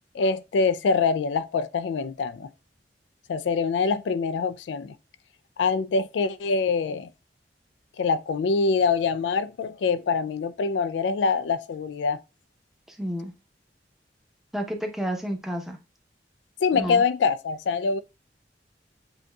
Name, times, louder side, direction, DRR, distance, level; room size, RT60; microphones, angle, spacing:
voice 1, 0.1-2.5 3.3-4.9 5.6-7.1 8.0-12.2 16.6-18.0, left 4 dB, 75° left, 0.3 m, -24 dB
voice 2, 12.9-13.3 14.5-15.8 16.7-17.0, equal, ahead, 0.8 m, -30 dB
7.6 x 2.8 x 2.3 m
head